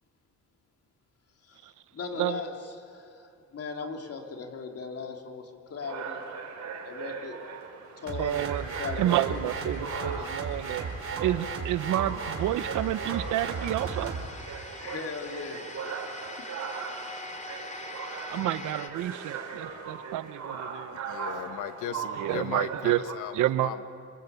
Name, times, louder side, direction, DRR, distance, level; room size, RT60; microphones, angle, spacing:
voice 1, 1.9-3.3 3.5-6.2 6.8-7.4 8.0-8.5 8.8-10.3 14.8-15.9, left 4 dB, 50° left, 3 dB, 3.4 m, -38 dB
sound 1, 5.8-23.2, right 6 dB, 65° right, 4.0 m, -39 dB
sound 2, 8.1-14.3, right 4 dB, 45° right, 4.6 m, -35 dB
voice 2, 8.2-8.7 9.0-10.9 11.2-14.1 18.3-20.9 22.2-23.0 23.3-23.7, right 14 dB, 90° right, 14 dB, 0.9 m, -29 dB
sound 3, 10.5-18.9, left 2 dB, 25° left, 2.7 m, -44 dB
voice 3, 20.9-23.8, left 10 dB, 85° left, 10 dB, 1.5 m, -37 dB
26.5 x 21.0 x 8.4 m, 2.5 s
cardioid pair, 90°, 30 cm